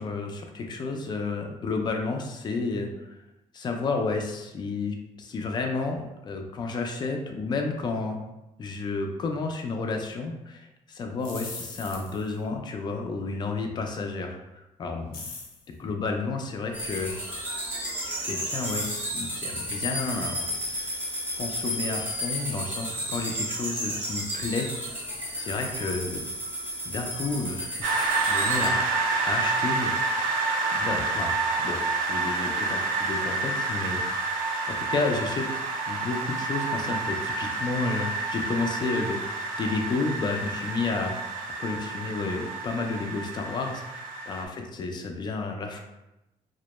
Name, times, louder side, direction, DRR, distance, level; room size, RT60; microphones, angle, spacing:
voice 1, 0.0-2.9 3.5-8.2 8.6-15.2 15.8-17.5 18.0-21.0 21.4-24.7 25.4-26.2 26.8-28.9 29.3-30.0 30.7-31.3 31.6-34.4 34.7-35.5 35.9-39.2 39.6-45.8, left 3 dB, 30° left, 3 dB, 0.3 m, -31 dB
sound 1, 11.1-12.3 15.1-15.6 18.5-19.2, left 4 dB, 85° left, 0.6 m, -40 dB
sound 2, 16.7-28.7, equal, 10° right, 0.6 m, -33 dB
sound 3, 27.8-44.4, right 3 dB, 85° right, 0.4 m, -29 dB
2.1 x 2.1 x 2.9 m, 0.95 s
cardioid pair, 135°, 14 cm